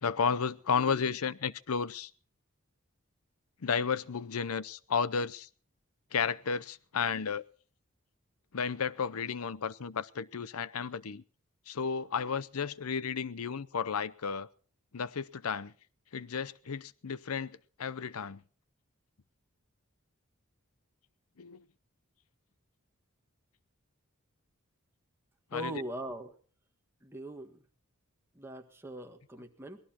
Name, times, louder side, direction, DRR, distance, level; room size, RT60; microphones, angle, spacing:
voice 1, 0.0-2.1 3.6-5.5 6.1-7.4 8.5-11.2 11.7-14.5 14.9-15.7 16.1-17.5 17.8-18.4 21.4-21.6 25.5-25.8, left 6 dB, 90° left, 0.7 m, -33 dB
voice 2, 25.5-26.3 27.0-27.6 28.3-29.8, right 1 dB, 10° right, 1.6 m, -40 dB
24.0 x 18.0 x 2.9 m
head